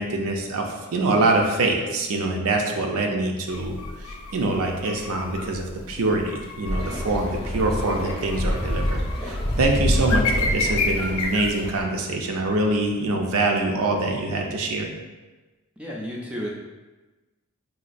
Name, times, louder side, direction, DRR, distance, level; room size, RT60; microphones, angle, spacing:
voice 1, 0.0-14.9, right 2 dB, 75° right, 2 dB, 0.5 m, -24 dB
sound 1, 3.5-11.5, left 3 dB, 75° left, 0.4 m, -32 dB
sound 2, 6.6-11.8, equal, 25° left, 0.7 m, -27 dB
voice 2, 15.8-16.5, equal, 5° right, -3 dB, 0.3 m, -32 dB
4.0 x 2.3 x 2.5 m, 1.2 s
head